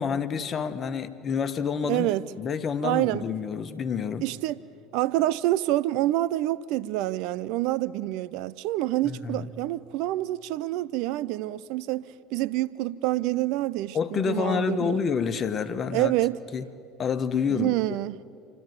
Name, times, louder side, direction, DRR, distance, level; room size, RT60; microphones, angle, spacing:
voice 1, 0.0-2.1 2.4-4.2 9.0-9.5 13.9-16.1 16.5-16.6 17.0-17.7, left 6 dB, 40° left, 1.3 m, -28 dB
voice 2, 1.9-2.2 2.8-3.3 4.2-4.6 4.9-15.0 15.9-16.4 17.5-18.2, right 16 dB, 65° right, 0.5 m, -27 dB
28.0 x 12.5 x 9.7 m
hypercardioid pair, 65°, 0 cm